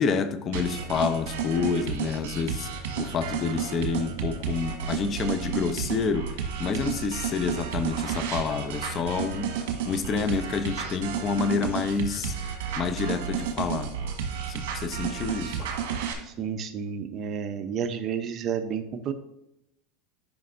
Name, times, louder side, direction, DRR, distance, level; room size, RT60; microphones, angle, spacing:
voice 1, 0.0-2.7 3.0-9.5 9.9-12.3 12.8-13.9 14.5-15.7, left 5 dB, 35° left, 0.6 m, -28 dB
sound 1, 0.5-16.1, right 7 dB, 75° right, 1.4 m, -32 dB
voice 2, 16.2-19.1, right 7 dB, 40° right, 0.7 m, -31 dB
10.5 x 5.3 x 2.6 m
supercardioid pair, 115°, 0 cm